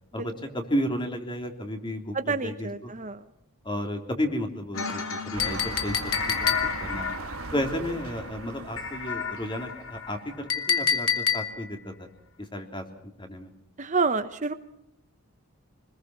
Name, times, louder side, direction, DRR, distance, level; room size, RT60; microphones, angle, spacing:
voice 1, 0.1-2.9 3.6-7.1 7.5-12.1 12.4-13.5, equal, 20° left, 5 dB, 3.2 m, -33 dB
voice 2, 2.3-3.2 13.8-14.5, right 4 dB, 35° right, 10 dB, 0.9 m, -28 dB
sound 1, 4.7-10.9, left 5 dB, 75° left, 3.8 m, -35 dB
sound 2, 5.3-10.3 11.0-11.1, right 3 dB, 75° right, 1.5 m, -39 dB
Chink clink, 5.4-7.0 10.5-11.8, left 7 dB, 90° left, 2.4 m, -27 dB
26.0 x 20.5 x 6.1 m, 0.79 s
head